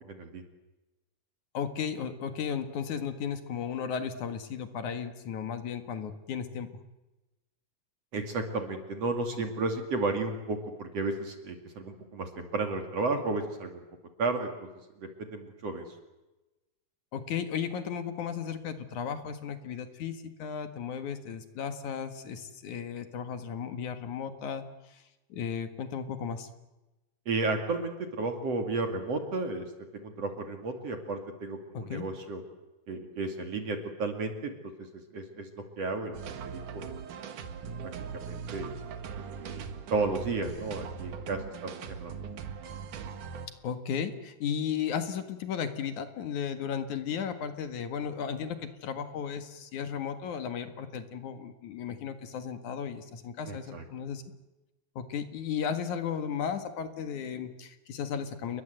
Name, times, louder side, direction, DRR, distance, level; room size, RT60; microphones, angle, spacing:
voice 1, 0.1-0.4 8.1-13.8 14.2-14.7 15.0-15.8 27.3-29.7 29.9-32.4 32.9-34.6 35.1-36.9 38.1-38.8 39.4-42.1 53.5-53.8, right 3 dB, 50° right, 5 dB, 3.3 m, -33 dB
voice 2, 1.5-6.7 17.1-24.6 24.9-25.0 25.3-26.5 31.7-32.1 43.6-54.2 55.0-58.6, left 7 dB, 70° left, 9 dB, 3.1 m, -35 dB
sound 1, 36.1-43.5, right 6 dB, 75° right, 3.1 m, -40 dB
30.0 x 22.0 x 8.0 m, 1.0 s
omnidirectional pair, 3.6 m